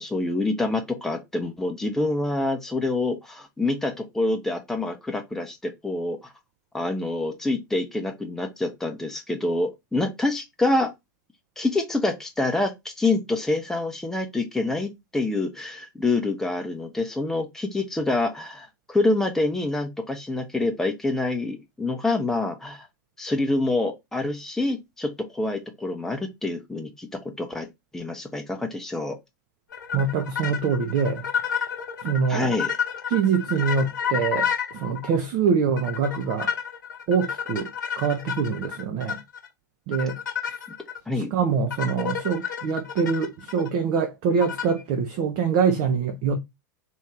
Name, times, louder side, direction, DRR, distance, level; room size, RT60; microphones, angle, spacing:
voice 1, 0.0-6.2 6.7-10.9 11.6-22.9 23.2-27.1 27.4-27.7 27.9-29.2 32.3-32.7 41.1-41.3, left 2 dB, 5° left, 0.7 m, -26 dB
sound 1, 29.7-35.2 35.8-39.5 39.9-41.0 41.7-43.7 44.4-44.8, left 8 dB, 70° left, 0.9 m, -30 dB
voice 2, 29.9-31.3 32.0-32.5 33.1-36.5 37.1-37.7 38.0-39.2 39.9-40.2 41.3-46.4, right 6 dB, 45° right, 0.7 m, -24 dB
3.0 x 2.6 x 3.6 m
figure-of-eight pair, 90°, 11 cm